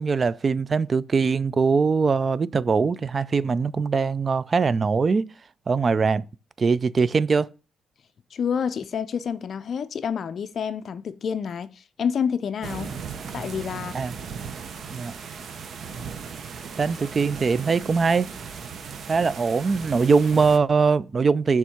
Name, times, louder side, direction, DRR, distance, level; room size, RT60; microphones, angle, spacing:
voice 1, 0.0-5.2 5.7-6.2 6.6-7.5 13.9-14.1 14.9-15.1 16.8-18.3 19.1-21.6, right 5 dB, 35° right, 0.3 m, -22 dB
voice 2, 8.3-12.9 13.3-14.0, left 7 dB, 55° left, 0.4 m, -28 dB
sound 1, 12.6-20.6, right 6 dB, 55° right, 0.7 m, -37 dB
6.9 x 3.6 x 4.3 m
cardioid pair, 90°, 0 cm